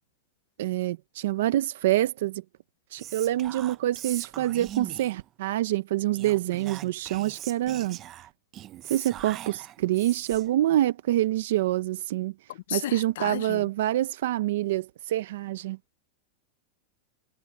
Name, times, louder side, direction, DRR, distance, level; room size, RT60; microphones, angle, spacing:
voice 1, 0.6-2.4 2.9-8.0 8.9-12.3 12.7-15.8, right 14 dB, 70° right, 0.7 m, -26 dB
Whispering, 3.0-5.3 6.1-10.6, right 12 dB, 25° right, 0.6 m, -41 dB
voice 2, 12.7-13.6, left 13 dB, 70° left, 0.5 m, -33 dB
supercardioid pair, 165°, 0 cm